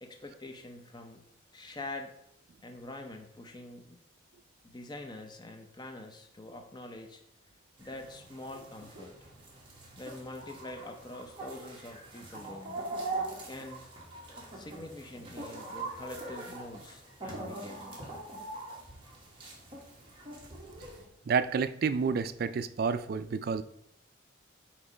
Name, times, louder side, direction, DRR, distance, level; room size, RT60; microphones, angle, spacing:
voice 1, 0.0-1.2 1.5-2.1 2.6-4.0 4.6-7.2 7.8-9.1 10.0-12.8 13.4-13.9 14.5-18.0, left 1 dB, 20° left, 4 dB, 0.6 m, -45 dB
sound 1, 7.8-21.1, right 2 dB, 25° right, 1.5 m, -42 dB
voice 2, 21.3-23.6, right 5 dB, 50° right, 13 dB, 0.3 m, -29 dB
8.1 x 3.1 x 4.9 m, 0.75 s
head